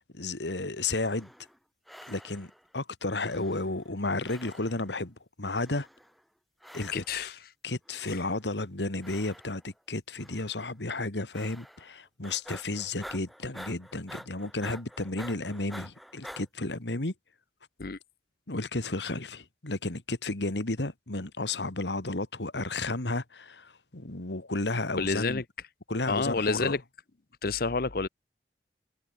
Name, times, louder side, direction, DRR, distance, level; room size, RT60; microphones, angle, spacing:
voice 1, 0.1-1.3 2.1-5.9 6.7-7.3 7.6-17.1 18.5-25.4 25.9-26.8, left 2 dB, 85° left, 2.2 m, -33 dB
sound 1, 0.9-1.6 1.9-2.7 3.2-4.0 4.2-5.0 5.6-6.2 6.6-7.3 7.9-8.5 9.0-9.8 10.2-10.7 11.3-12.0 12.2-16.4, equal, ahead, 2.6 m, -48 dB
voice 2, 6.9-7.5 8.1-8.2 17.8-18.0 25.0-25.4 26.1-26.8 27.4-28.1, left 4 dB, 55° left, 0.9 m, -29 dB
head